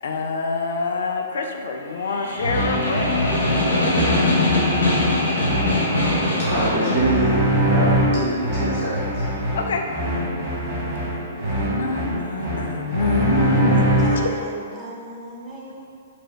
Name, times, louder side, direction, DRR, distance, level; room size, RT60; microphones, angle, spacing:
voice 1, 0.0-3.1 9.5-9.8 10.8-11.0 11.4-13.9 14.1-14.2, left 3 dB, 60° left, 3 dB, 0.3 m, -25 dB
sound 1, 1.8-8.9, equal, 85° right, 1.4 m, -32 dB
Snare drum, 2.1-7.1, left 2 dB, 75° left, 0.7 m, -22 dB
sound 2, 2.4-14.4, right 1 dB, 40° right, 1.0 m, -23 dB
voice 2, 6.4-9.3, right 1 dB, 60° right, -9 dB, 0.6 m, -25 dB
voice 3, 14.0-15.9, right 2 dB, 20° right, -4 dB, 0.4 m, -35 dB
3.3 x 2.1 x 3.1 m, 2.2 s
figure-of-eight pair, 115°, 0 cm